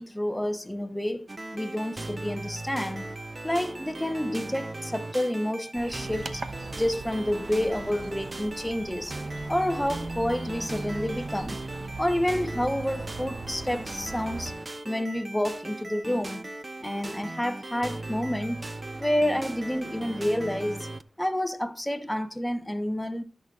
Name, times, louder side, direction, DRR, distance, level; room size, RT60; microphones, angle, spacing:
voice 1, 0.0-3.1 3.4-6.4 6.7-9.1 9.5-11.6 12.0-14.5 14.8-16.5 16.8-18.7 19.0-20.9 21.2-23.2, left 1 dB, 10° left, 0.9 m, -29 dB
sound 1, 1.3-21.0, right 2 dB, 30° right, 0.5 m, -38 dB
sound 2, 5.7-14.5, right 3 dB, 50° right, 0.9 m, -42 dB
14.5 x 6.3 x 2.4 m
wide cardioid pair, 75°, 0 cm